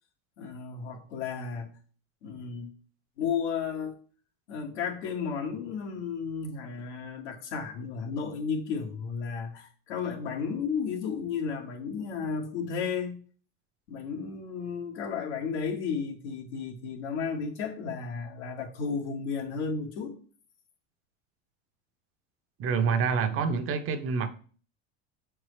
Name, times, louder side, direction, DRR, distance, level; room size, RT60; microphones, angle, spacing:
voice 1, 0.4-1.7 2.2-2.7 3.2-3.9 4.5-13.2 13.9-20.1, left 6 dB, 85° left, 1.7 m, -33 dB
voice 2, 22.6-24.3, right 5 dB, 40° right, 0.8 m, -27 dB
6.7 x 4.5 x 3.2 m
supercardioid pair, 115°, 34 cm